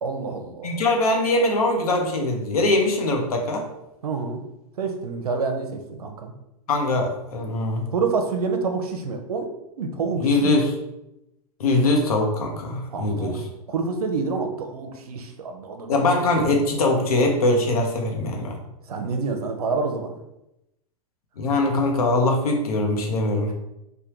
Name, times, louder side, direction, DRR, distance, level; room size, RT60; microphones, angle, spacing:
voice 1, 0.0-0.7 4.0-4.4 4.8-6.3 7.9-9.5 9.8-10.6 12.9-16.0 18.9-20.2, right 4 dB, 90° right, 5 dB, 0.6 m, -28 dB
voice 2, 0.6-3.6 6.7-7.9 10.2-10.7 11.6-13.4 15.9-18.6 21.4-23.5, left 2 dB, 80° left, 2 dB, 0.8 m, -22 dB
3.4 x 2.2 x 2.9 m, 0.89 s
hypercardioid pair, 120°, 19 cm